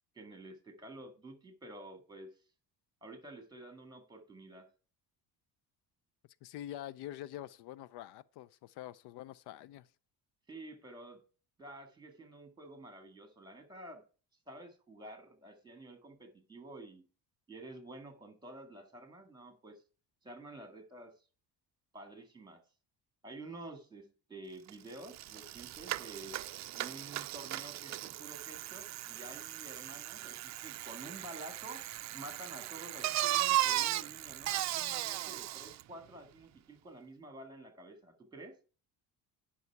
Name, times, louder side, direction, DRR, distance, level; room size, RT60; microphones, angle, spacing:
voice 1, 0.2-2.3 3.0-4.7 10.5-11.2 11.6-14.0 14.5-17.1 17.5-19.8 20.2-21.1 21.9-22.6 23.2-26.4 26.8-38.6, right 2 dB, 10° right, 1.9 m, -50 dB
voice 2, 6.4-9.9, left 13 dB, 75° left, 0.5 m, -46 dB
Bicycle, 24.7-24.8 25.0-35.8, right 15 dB, 45° right, 0.4 m, -36 dB
11.0 x 5.6 x 4.6 m
cardioid pair, 140°, 40 cm